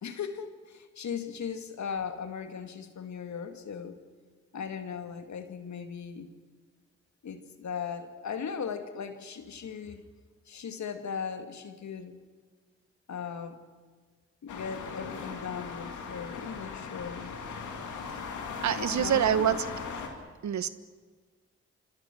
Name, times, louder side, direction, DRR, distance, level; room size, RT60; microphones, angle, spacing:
voice 1, 0.0-4.0 4.5-6.3 7.2-10.0 10.5-12.2 13.1-13.6 14.4-17.3 18.7-19.6, left 6 dB, 75° left, 8 dB, 2.1 m, -38 dB
sound 1, 14.5-20.1, left 5 dB, 90° left, 2.7 m, -39 dB
voice 2, 18.6-19.6 20.4-20.7, right 9 dB, 75° right, 14 dB, 1.1 m, -25 dB
26.5 x 25.5 x 6.2 m, 1.5 s
supercardioid pair, 40°, 29 cm